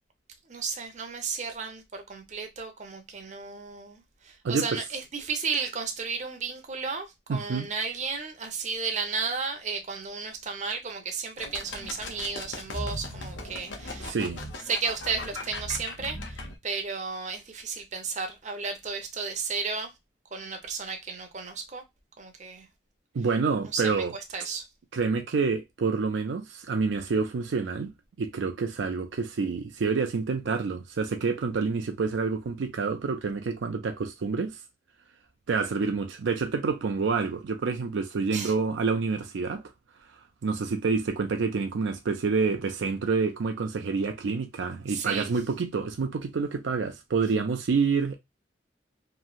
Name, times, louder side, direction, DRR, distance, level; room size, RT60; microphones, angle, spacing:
voice 1, 0.5-14.2 14.7-16.4 16.6-19.9 20.3-21.8 22.2-22.7 23.6-24.7 38.3-38.5 44.9-45.3, right 5 dB, 40° right, 0.7 m, -33 dB
voice 2, 4.4-4.8 7.3-7.7 14.0-14.4 23.1-24.1 24.9-27.9 28.2-34.6 35.5-39.6 40.4-48.2, right 4 dB, 80° right, 0.4 m, -28 dB
sound 1, 11.4-16.6, left 2 dB, 85° left, 0.8 m, -38 dB
3.1 x 2.6 x 2.3 m
head